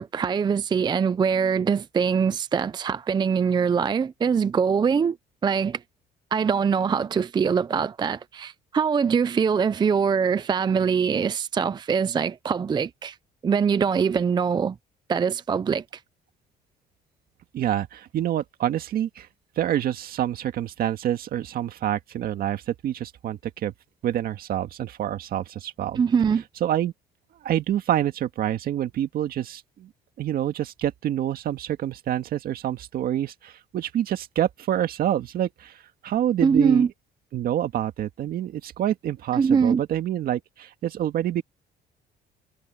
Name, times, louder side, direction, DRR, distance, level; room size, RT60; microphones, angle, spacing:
voice 1, 0.0-5.2 5.4-5.8 6.3-13.2 13.4-14.8 15.1-15.8 26.0-26.4 36.4-36.9 39.4-39.8, right 6 dB, 25° right, 0.5 m, -23 dB
voice 2, 17.5-19.3 19.6-23.7 24.0-26.0 26.6-26.9 27.4-29.9 30.2-36.9 37.3-41.4, right 11 dB, 60° right, 1.8 m, -27 dB
cardioid pair, 110°, 17 cm